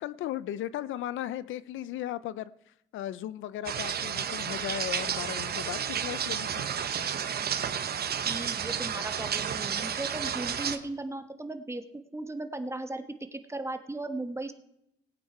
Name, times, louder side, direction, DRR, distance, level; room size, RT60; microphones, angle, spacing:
voice 1, 0.0-2.5 2.9-6.7, left 12 dB, 80° left, 17 dB, 0.6 m, -36 dB
sound 1, 3.6-10.8, right 8 dB, 50° right, 1.1 m, -31 dB
voice 2, 8.2-11.8 12.1-13.0 13.3-14.5, right 2 dB, 15° right, 8 dB, 1.3 m, -36 dB
19.0 x 8.6 x 4.6 m, 0.80 s
cardioid pair, 90°, 20 cm